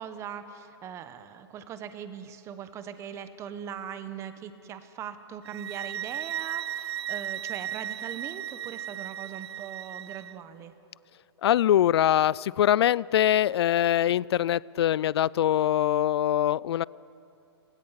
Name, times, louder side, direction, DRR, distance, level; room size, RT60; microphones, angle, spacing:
voice 1, 0.0-10.7, right 8 dB, 20° right, 11 dB, 1.0 m, -40 dB
sound 1, 5.4-10.3, right 11 dB, 70° right, 0.4 m, -36 dB
voice 2, 11.4-16.8, left 11 dB, 65° left, 24 dB, 0.4 m, -23 dB
28.0 x 16.5 x 5.8 m, 2.6 s
hypercardioid pair, 145°, 14 cm